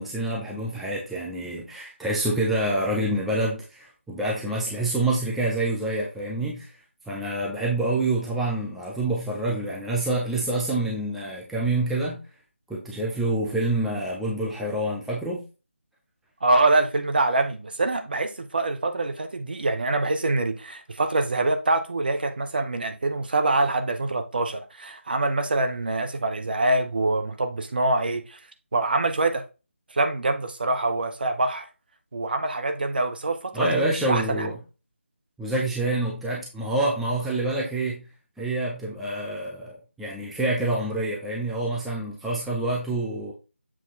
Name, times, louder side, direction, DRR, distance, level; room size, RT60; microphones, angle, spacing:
voice 1, 0.0-6.7 7.1-12.2 12.7-15.4 33.5-34.6 35.4-38.1 38.4-43.3, right 2 dB, ahead, 0.6 m, -27 dB
voice 2, 16.4-28.4 28.7-29.4 29.9-31.7 32.1-34.5, right 2 dB, 45° right, 1.0 m, -25 dB
7.5 x 3.7 x 4.1 m
figure-of-eight pair, 160°, 7 cm